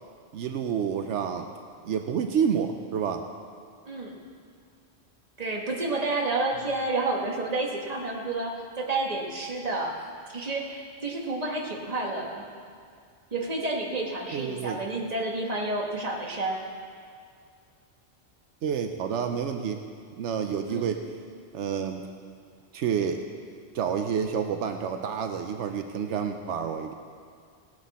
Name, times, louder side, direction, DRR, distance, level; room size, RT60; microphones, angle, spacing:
voice 1, 0.3-1.5 1.8-3.2 14.3-14.8 18.6-19.8 20.2-21.1 21.5-22.1 22.7-23.2 23.7-26.9, right 7 dB, 80° right, 6 dB, 0.9 m, -29 dB
voice 2, 3.8-4.2 5.4-12.4 13.3-16.6 20.7-20.9, right 2 dB, 35° right, 0 dB, 1.5 m, -30 dB
17.5 x 9.7 x 4.2 m, 2.2 s
omnidirectional pair, 1.2 m